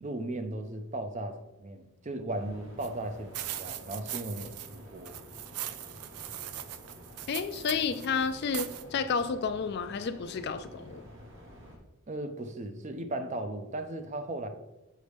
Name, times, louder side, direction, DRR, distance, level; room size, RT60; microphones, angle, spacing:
voice 1, 0.0-5.2 12.1-14.5, right 1 dB, 30° right, 8 dB, 0.4 m, -36 dB
sound 1, 2.3-11.8, equal, 55° right, 1.1 m, -50 dB
sound 2, 2.8-2.9 3.3-4.8 5.0-8.1 8.5-8.8, right 12 dB, 90° right, 0.4 m, -40 dB
voice 2, 7.3-11.0, left 5 dB, 45° left, 10 dB, 0.3 m, -31 dB
6.5 x 5.3 x 3.4 m, 1.0 s
head